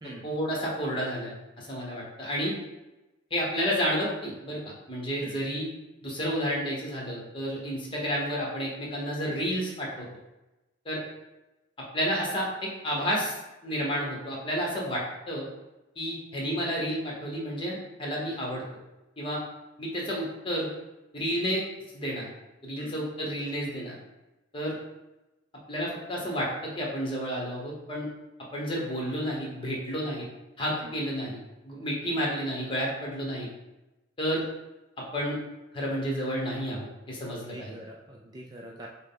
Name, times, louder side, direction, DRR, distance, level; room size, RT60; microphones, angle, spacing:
voice 1, 0.2-2.5 3.3-4.6 4.9-5.7 6.0-10.1 10.8-11.0 11.9-13.4 13.6-15.0 15.3-15.4 16.0-18.6 19.2-19.4 19.8-20.7 21.1-21.6 21.9-22.3 22.6-23.9 24.5-24.8 25.7-28.1 28.5-30.2 30.6-31.4 31.6-33.5 34.2-34.4 35.1-35.4 35.7-37.7, equal, 25° left, -3 dB, 1.1 m, -31 dB
voice 2, 37.5-38.9, right 1 dB, 20° right, -1 dB, 0.3 m, -44 dB
6.2 x 2.2 x 3.8 m, 1.0 s
head